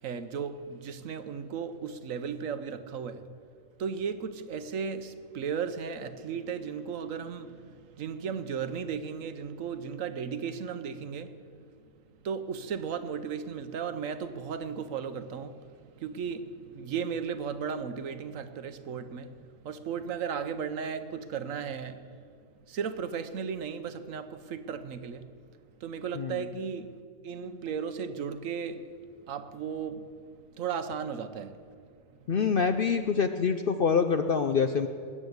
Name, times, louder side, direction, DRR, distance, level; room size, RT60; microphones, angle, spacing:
voice 1, 0.0-3.3 3.8-11.6 12.2-22.1 22.7-25.3 25.8-27.0 27.2-28.9 29.3-30.1 30.5-31.7 32.2-32.3, right 6 dB, 65° right, 1.1 m, -35 dB
voice 2, 32.3-34.9, left 6 dB, 55° left, 0.6 m, -25 dB
20.5 x 8.6 x 8.0 m
omnidirectional pair, 1.5 m